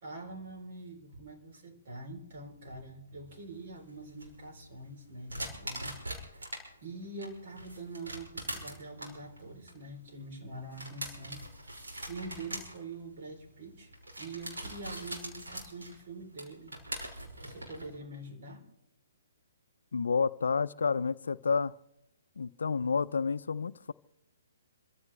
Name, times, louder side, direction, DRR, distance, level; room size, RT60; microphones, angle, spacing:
voice 1, 0.0-6.5 6.8-11.4 12.1-13.9 14.2-16.8 17.4-18.7, right 2 dB, 50° right, 3.8 m, -45 dB
sound 1, 3.3-6.6 7.0-18.0, right 1 dB, 80° right, 5.7 m, -43 dB
voice 2, 19.9-21.7 22.4-23.9, left 5 dB, 70° left, 0.5 m, -30 dB
27.5 x 15.0 x 3.4 m
figure-of-eight pair, 135°, 0 cm